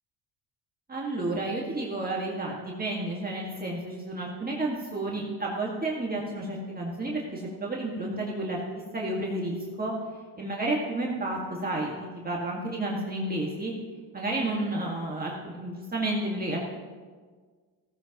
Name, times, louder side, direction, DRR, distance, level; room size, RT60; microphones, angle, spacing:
voice 1, 0.9-8.6 8.9-9.9 10.4-13.7 14.1-16.6, right 2 dB, 20° right, -3 dB, 1.8 m, -31 dB
15.5 x 14.0 x 3.0 m, 1.5 s
cardioid pair, 105°, 44 cm